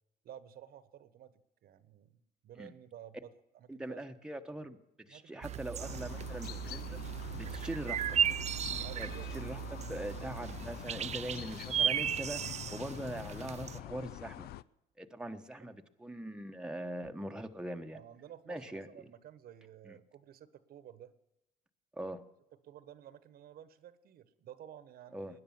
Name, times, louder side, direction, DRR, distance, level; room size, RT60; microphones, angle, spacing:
voice 1, 0.2-1.3 1.6-4.0 5.1-5.8 8.8-9.3 15.6-15.8 17.9-21.1 22.6-25.4, right 10 dB, 65° right, 14 dB, 1.3 m, -53 dB
voice 2, 3.7-7.0 7.4-8.0 8.8-12.4 12.7-14.5 15.0-18.0 18.5-18.9 19.8-20.0 21.9-22.2 25.1-25.4, right 1 dB, 5° right, 5 dB, 1.1 m, -42 dB
sound 1, 5.4-13.8, right 9 dB, 40° right, 0.6 m, -36 dB
sound 2, 5.8-14.6, left 13 dB, 70° left, 0.5 m, -45 dB
19.5 x 10.5 x 7.2 m, 0.89 s
cardioid pair, 110°, 17 cm